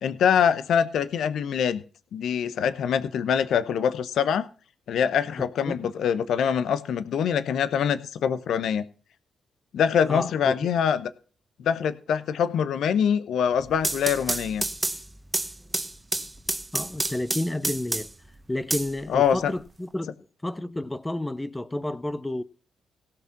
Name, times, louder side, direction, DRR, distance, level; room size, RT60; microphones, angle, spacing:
voice 1, 0.0-1.8 2.1-4.5 4.9-8.8 9.7-11.1 11.6-14.6 19.1-19.5, left 8 dB, 70° left, 0.8 m, -24 dB
voice 2, 10.1-10.5 16.7-18.1 18.5-20.1 20.4-22.4, left 1 dB, 15° left, 0.8 m, -31 dB
sound 1, 13.6-18.3 18.7-19.7, right 2 dB, 20° right, 1.2 m, -29 dB
17.0 x 6.0 x 6.0 m
hypercardioid pair, 45°, 0 cm